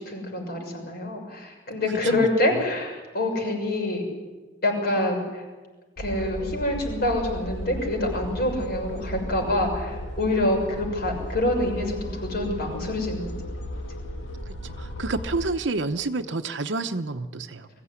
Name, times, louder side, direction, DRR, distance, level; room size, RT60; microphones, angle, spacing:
voice 1, 0.0-4.0 4.6-5.5 6.0-13.3, left 1 dB, 55° left, 2 dB, 6.7 m, -26 dB
sound 1, 6.0-15.5, equal, 85° left, 2.1 m, -35 dB
voice 2, 14.5-17.7, right 3 dB, 75° right, 7 dB, 0.9 m, -29 dB
22.5 x 15.5 x 9.8 m, 1.3 s
head